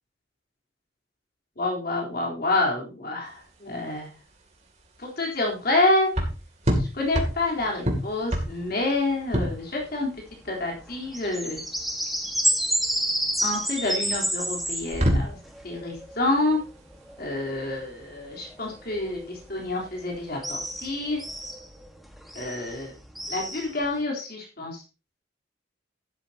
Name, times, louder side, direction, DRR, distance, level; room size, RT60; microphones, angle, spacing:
voice 1, 1.6-4.1 5.0-6.1 6.8-10.1 10.5-11.6 13.4-15.4 15.6-16.6 17.2-21.2 22.4-22.9 23.3-24.8, left 2 dB, 55° left, -1 dB, 3.7 m, -28 dB
sound 1, 3.3-21.5, equal, 35° right, 2.7 m, -31 dB
sound 2, 7.0-24.0, equal, ahead, 1.5 m, -32 dB
12.5 x 11.5 x 2.8 m, 0.32 s
head